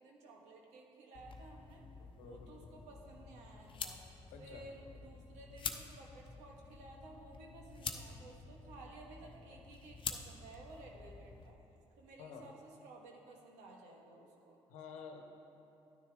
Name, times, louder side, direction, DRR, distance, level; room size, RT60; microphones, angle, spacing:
voice 1, 0.0-1.8 2.2-4.0 4.4-11.6 12.0-14.6, right 2 dB, 85° right, 1 dB, 1.3 m, -55 dB
sound 1, 1.1-11.5, left 5 dB, 45° left, 0.8 m, -48 dB
voice 2, 2.0-2.8 4.3-4.7 12.2-12.5 14.7-15.2, left 6 dB, 85° left, 4 dB, 1.0 m, -51 dB
12.5 x 9.6 x 3.5 m, 2.8 s
supercardioid pair, 65°, 12 cm